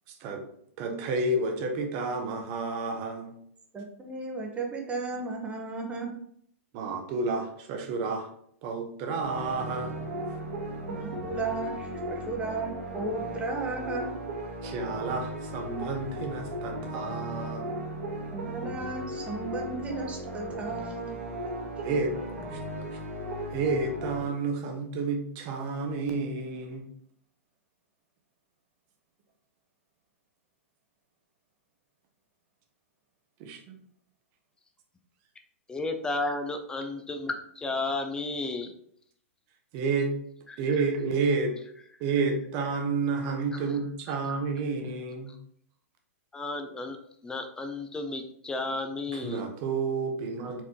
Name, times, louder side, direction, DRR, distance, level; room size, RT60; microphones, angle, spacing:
voice 1, 0.1-0.4 0.8-3.3 6.7-8.3 8.6-9.9 14.6-17.8 21.8-22.2 22.5-23.0 23.5-26.8 33.4-33.7 39.7-40.1 40.6-41.5 42.0-45.3 49.2-50.6, right 4 dB, 40° right, 4 dB, 0.9 m, -30 dB
voice 2, 3.7-6.2 10.9-14.1 18.3-21.2, right 3 dB, 15° right, 2 dB, 0.9 m, -35 dB
sound 1, 9.2-24.2, right 1 dB, 65° right, 1.7 m, -36 dB
voice 3, 35.7-38.7 40.5-40.6 43.5-43.7 44.2-44.3 46.3-47.0 47.2-49.4, left 2 dB, 10° left, 5 dB, 0.5 m, -33 dB
4.5 x 3.5 x 2.9 m, 0.67 s
figure-of-eight pair, 110°, 8 cm